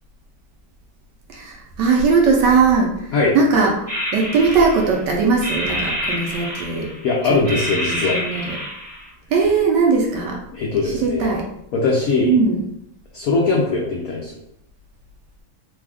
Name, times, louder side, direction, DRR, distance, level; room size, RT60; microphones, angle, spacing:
voice 1, 1.3-3.7 4.1-6.9 7.5-8.6 9.3-10.4 10.8-11.5 12.2-12.6, right 4 dB, 70° right, -1 dB, 1.1 m, -19 dB
sound 1, 3.9-5.0 5.4-7.0 7.4-9.1, equal, 20° right, 0.8 m, -27 dB
voice 2, 7.0-8.2 10.5-11.3 11.7-12.3 13.1-14.3, left 3 dB, 85° left, -2 dB, 0.7 m, -20 dB
3.4 x 2.3 x 3.4 m, 0.76 s
omnidirectional pair, 2.2 m